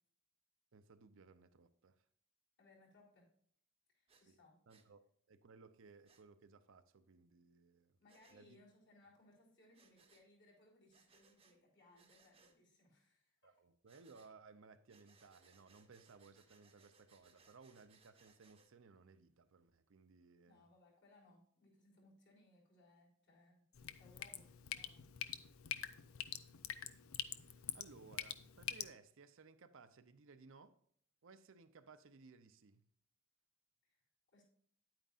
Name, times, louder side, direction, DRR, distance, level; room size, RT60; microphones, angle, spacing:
voice 1, 0.7-2.0 4.1-4.4 4.7-5.0 5.3-8.0 8.3-8.6 13.4-20.7 27.4-30.8 31.2-32.8, right 4 dB, 65° right, 0.6 m, -61 dB
voice 2, 2.6-3.3 3.9-4.6 8.0-13.6 20.4-23.7 23.9-25.1 33.8-34.0 34.3-34.4, left 2 dB, 55° left, 3.9 m, -67 dB
Breathing, 4.1-4.2 4.7-4.9 6.0-6.2 8.1-8.4 9.7-10.3 10.9-11.6 11.9-12.6 13.9-14.3 14.9-18.7, right 4 dB, 25° right, 0.9 m, -70 dB
Drip, 23.7-28.9, left 10 dB, 70° left, 0.6 m, -46 dB
9.7 x 9.0 x 2.5 m
head